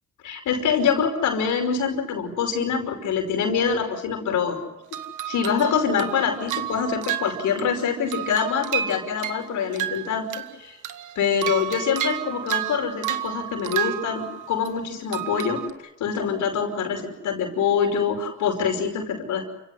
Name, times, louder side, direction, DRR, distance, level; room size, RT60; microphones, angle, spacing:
voice 1, 0.2-4.6 5.3-10.8 11.2-15.6 16.0-19.4, left 6 dB, 80° left, 4 dB, 5.5 m, -25 dB
sound 1, 4.9-7.8 8.1-10.6 10.8-14.7 15.1-15.7, right 11 dB, 80° right, 1.5 m, -31 dB
29.0 x 17.0 x 9.8 m, 0.92 s
cardioid pair, 90°, 30 cm